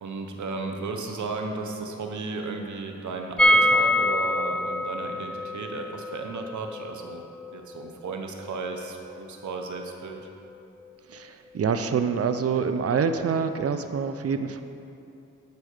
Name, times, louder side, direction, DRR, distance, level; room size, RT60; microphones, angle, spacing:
voice 1, 0.0-7.2 7.5-10.3, right 3 dB, 80° right, 3 dB, 1.0 m, -34 dB
sound 1, 3.4-9.2 9.4-9.5 9.8-9.9, left 1 dB, 5° left, 0.4 m, -25 dB
voice 2, 11.1-14.6, right 6 dB, 55° right, 8 dB, 0.6 m, -26 dB
9.5 x 4.8 x 6.5 m, 2.7 s
cardioid pair, 60°, 29 cm